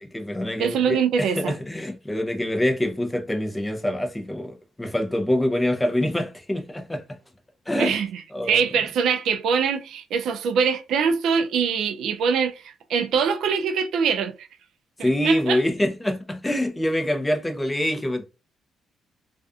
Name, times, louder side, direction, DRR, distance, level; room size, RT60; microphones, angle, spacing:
voice 1, 0.0-7.0 7.7-7.9 8.3-8.6 15.0-18.2, left 1 dB, 10° left, 0.5 m, -25 dB
voice 2, 0.6-1.5 7.8-14.5 15.0-15.6, right 6 dB, 75° right, 0.3 m, -23 dB
2.4 x 2.4 x 2.3 m
cardioid pair, 90°, 0 cm